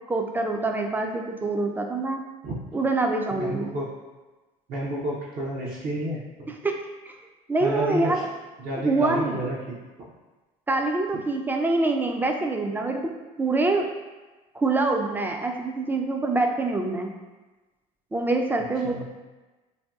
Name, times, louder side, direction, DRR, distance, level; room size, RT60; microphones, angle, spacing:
voice 1, 0.1-2.2 2.7-3.7 6.6-6.7 7.1-7.2 7.5-8.3 8.8-9.5 10.7-13.1 13.4-13.9 14.5-17.1 18.1-19.0, right 2 dB, 10° right, 3 dB, 0.3 m, -25 dB
voice 2, 3.3-3.9 4.7-6.5 7.6-8.2 8.6-9.8 18.8-19.0, right 1 dB, 50° right, -5 dB, 0.6 m, -30 dB
2.8 x 2.7 x 2.3 m, 1.2 s
supercardioid pair, 80°, 18 cm